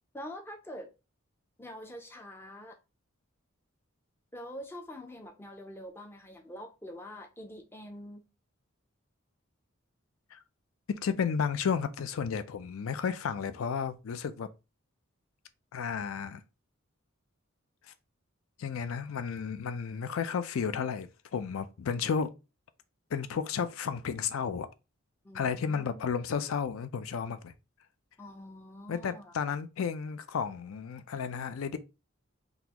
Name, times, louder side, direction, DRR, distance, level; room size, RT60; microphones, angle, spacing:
voice 1, 0.1-0.9 1.6-2.8 4.3-8.3 25.2-26.0 28.2-29.3, equal, 10° left, 0.4 m, -45 dB
voice 2, 10.9-14.5 15.7-16.4 18.6-22.3 23.1-24.7 25.3-27.5 28.9-31.8, left 6 dB, 80° left, 0.4 m, -32 dB
3.8 x 2.4 x 2.8 m
head